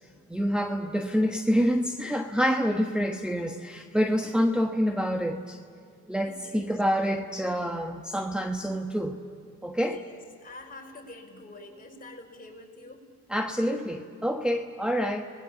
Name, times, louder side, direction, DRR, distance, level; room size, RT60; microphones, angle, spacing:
voice 1, 0.3-5.6 6.1-9.2 9.6-10.0 13.3-15.3, equal, 5° right, 5 dB, 1.2 m, -27 dB
voice 2, 6.2-6.7 9.8-13.0, left 2 dB, 30° left, 1 dB, 4.7 m, -46 dB
29.0 x 20.5 x 7.2 m, 2.4 s
cardioid pair, 90°, 30 cm